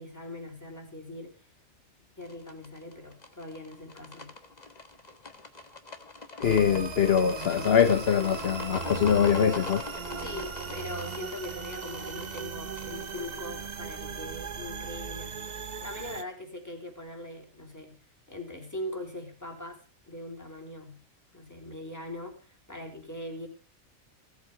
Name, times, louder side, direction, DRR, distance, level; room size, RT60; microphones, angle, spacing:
voice 1, 0.0-1.5 2.2-4.3 10.2-21.0 21.3-23.5, left 1 dB, 10° left, 3.7 m, -41 dB
sound 1, 2.2-13.4, left 3 dB, 30° left, 1.6 m, -42 dB
voice 2, 6.4-9.8, left 8 dB, 50° left, 1.1 m, -23 dB
sound 2, 6.4-16.2, right 6 dB, 35° right, 0.8 m, -38 dB
17.5 x 8.3 x 5.0 m
omnidirectional pair, 1.5 m